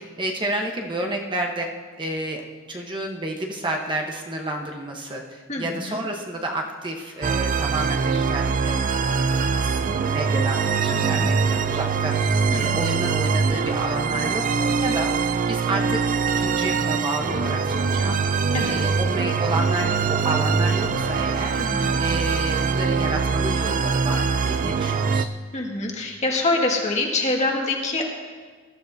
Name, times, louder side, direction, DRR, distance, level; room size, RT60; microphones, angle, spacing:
voice 1, 0.0-1.7 2.0-2.4 2.7-21.6 22.0-25.3, right 1 dB, 25° right, 1 dB, 1.0 m, -30 dB
voice 2, 5.5-6.0 10.9-11.3 12.5-12.8 18.5-18.8 21.6-22.0 25.5-28.0, left 2 dB, 35° left, 0 dB, 1.8 m, -25 dB
sound 1, 7.2-25.3, right 5 dB, 40° right, 0.4 m, -23 dB
21.0 x 12.5 x 2.7 m, 1.5 s
head